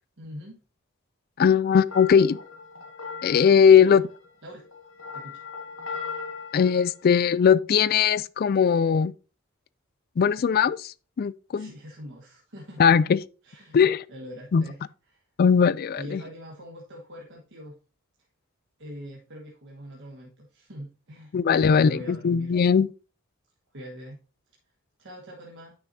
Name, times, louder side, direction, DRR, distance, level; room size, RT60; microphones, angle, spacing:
voice 1, 0.2-0.6 3.7-4.0 4.4-4.7 5.1-5.4 11.5-12.8 13.4-13.8 14.1-14.8 15.1-15.2 16.0-17.7 18.8-21.4 21.7-22.5 23.7-24.2 25.0-25.7, equal, 65° right, 1.4 m, -42 dB
voice 2, 1.4-2.4 3.2-4.0 6.5-9.1 10.2-11.7 12.8-13.2 13.7-14.0 14.5-14.6 15.4-16.2 21.3-22.9, left 7 dB, 50° left, 0.3 m, -19 dB
sound 1, 1.9-7.3, left 5 dB, 90° left, 1.8 m, -39 dB
9.8 x 6.0 x 2.7 m
head